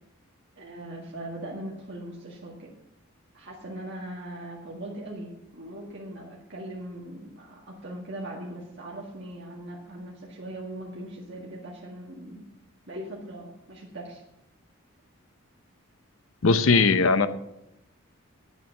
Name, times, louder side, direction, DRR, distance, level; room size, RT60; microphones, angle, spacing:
voice 1, 0.6-2.7 3.3-12.5 12.9-14.2, right 1 dB, 55° right, -4 dB, 1.9 m, -40 dB
voice 2, 16.4-17.3, left 4 dB, 70° left, 11 dB, 0.7 m, -19 dB
9.6 x 8.1 x 6.0 m, 0.86 s
head